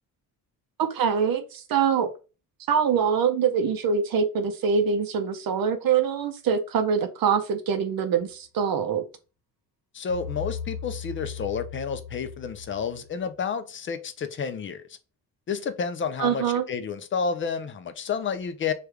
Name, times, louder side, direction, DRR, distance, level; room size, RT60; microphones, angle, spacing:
voice 1, 0.8-2.1 2.7-9.0 16.2-16.6, right 6 dB, 70° right, 0.6 m, -24 dB
voice 2, 9.9-14.8 15.5-18.7, left 6 dB, 35° left, 0.4 m, -30 dB
sound 1, 10.1-13.2, left 6 dB, 45° right, 0.9 m, -37 dB
3.2 x 2.3 x 3.2 m
cardioid pair, 130°, 36 cm